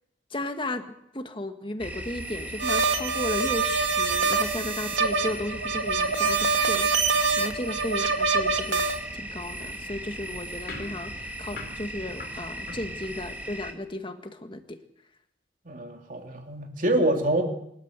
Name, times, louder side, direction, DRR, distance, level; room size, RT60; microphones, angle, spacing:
voice 1, 0.3-0.8 1.1-8.8 9.1-14.8, left 1 dB, 25° left, 7 dB, 1.7 m, -35 dB
sound 1, 1.8-13.7, right 1 dB, 10° right, 2.2 m, -37 dB
sound 2, 2.6-9.0, right 4 dB, 85° right, 2.2 m, -25 dB
sound 3, 10.7-13.6, left 3 dB, 55° left, 3.6 m, -44 dB
voice 2, 15.6-17.4, right 1 dB, 45° right, 3 dB, 3.0 m, -26 dB
25.5 x 13.0 x 8.1 m, 0.76 s
head